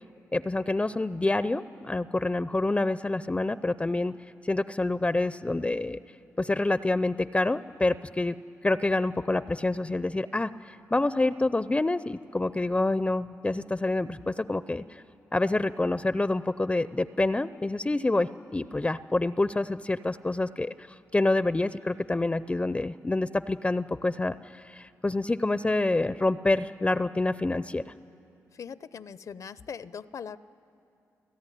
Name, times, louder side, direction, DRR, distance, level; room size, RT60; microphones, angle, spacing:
voice 1, 0.3-4.2 4.4-6.0 6.4-8.4 8.6-15.0 15.3-27.9, left 2 dB, 20° left, 14 dB, 0.5 m, -27 dB
voice 2, 28.5-30.4, left 6 dB, 65° left, 16 dB, 0.7 m, -40 dB
29.5 x 16.5 x 9.9 m, 2.6 s
cardioid pair, 65°, 6 cm